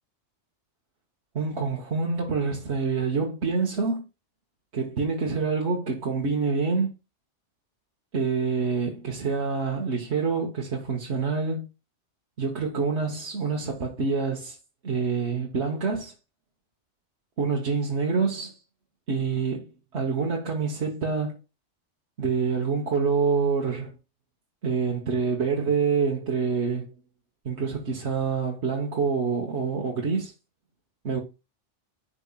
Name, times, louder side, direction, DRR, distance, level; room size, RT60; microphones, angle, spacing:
voice 1, 1.3-4.0 4.7-6.9 8.1-11.7 12.4-14.6 14.8-16.1 17.4-18.6 19.1-21.4 22.2-23.9 24.6-26.9 27.4-30.3 31.0-31.2, right 5 dB, 65° right, 1.4 m, -26 dB
11.0 x 4.4 x 2.3 m
omnidirectional pair, 1.2 m